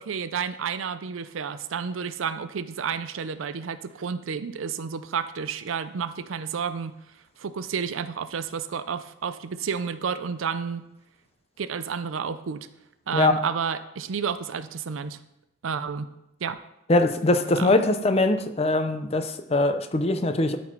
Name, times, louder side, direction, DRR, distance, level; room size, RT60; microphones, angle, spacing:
voice 1, 0.0-7.0 7.4-10.8 11.6-12.7 13.1-15.2 15.6-16.1 16.4-16.6 17.5-17.7, right 6 dB, 90° right, 13 dB, 0.5 m, -31 dB
voice 2, 16.9-20.6, left 2 dB, 30° left, 8 dB, 0.6 m, -22 dB
12.5 x 4.3 x 4.5 m, 0.89 s
head